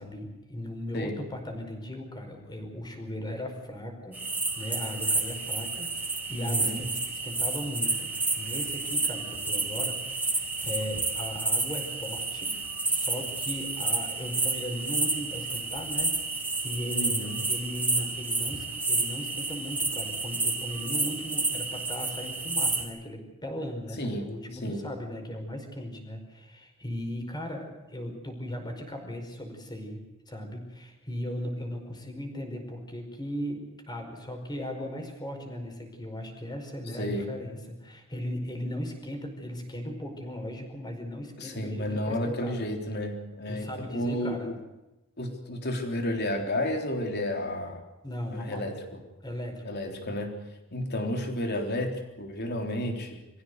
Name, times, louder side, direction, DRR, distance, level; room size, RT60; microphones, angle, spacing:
voice 1, 0.0-4.2 4.6-12.6 12.8-17.1 17.4-42.6 43.5-44.5 48.0-48.7 49.2-49.8, equal, 20° left, 3 dB, 5.1 m, -37 dB
sound 1, 4.1-22.8, right 3 dB, 10° right, 4.6 m, -30 dB
voice 2, 6.4-6.8 16.9-17.4 24.0-24.8 36.9-37.3 41.4-44.5 45.2-47.8 48.3-48.8 49.6-50.3 50.7-53.2, left 1 dB, 50° left, 4 dB, 3.7 m, -32 dB
25.0 x 15.5 x 8.1 m, 1.0 s
head